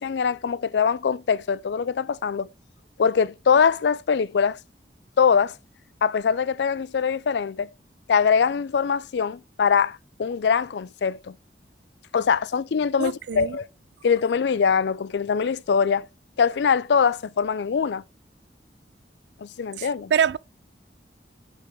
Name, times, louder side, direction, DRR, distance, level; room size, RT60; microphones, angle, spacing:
voice 1, 0.0-2.5 3.0-4.6 5.2-5.5 6.0-7.7 8.1-11.4 12.1-13.7 14.0-16.1 16.4-18.0 19.4-20.1, left 6 dB, 75° left, 0.4 m, -23 dB
voice 2, 13.0-13.6 19.8-20.4, right 8 dB, 75° right, 0.3 m, -25 dB
9.9 x 5.3 x 3.5 m
head